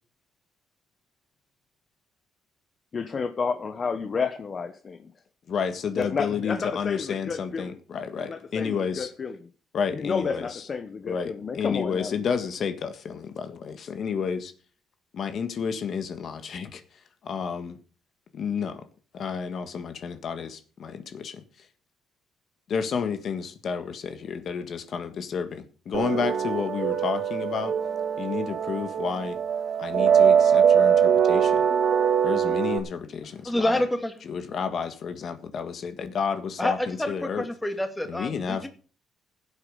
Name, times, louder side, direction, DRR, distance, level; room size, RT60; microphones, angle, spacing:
voice 1, 2.9-5.1 6.0-7.8 8.3-9.3 9.9-12.1, left 5 dB, 35° left, 1.1 m, -31 dB
voice 2, 5.5-9.1 9.7-10.7 11.1-14.5 15.1-17.8 18.3-18.8 19.1-21.7 22.7-27.7 28.2-29.4 29.8-31.7 32.2-33.8 34.2-37.5 38.1-38.6, left 6 dB, 55° left, 1.6 m, -31 dB
sound 1, 25.9-32.8, right 8 dB, 65° right, 1.9 m, -22 dB
voice 3, 33.5-34.1 36.6-38.7, left 1 dB, 10° left, 2.3 m, -27 dB
16.0 x 8.6 x 5.5 m
cardioid pair, 120°, 0 cm